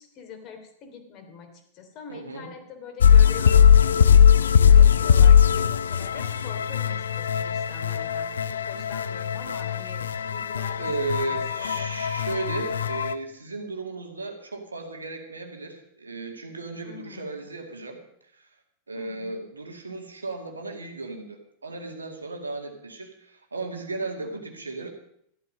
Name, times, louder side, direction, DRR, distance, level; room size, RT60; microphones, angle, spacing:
voice 1, 0.0-11.9 16.8-17.4 18.9-19.5 24.2-24.6, left 5 dB, 40° left, 5 dB, 3.0 m, -44 dB
voice 2, 2.1-2.5 10.6-18.0 18.3-18.5 18.9-24.9, right 3 dB, 75° right, 3 dB, 2.1 m, -35 dB
sound 1, 3.0-13.1, left 8 dB, 70° left, 0.5 m, -19 dB
14.5 x 12.0 x 5.4 m, 0.71 s
figure-of-eight pair, 90°, 0 cm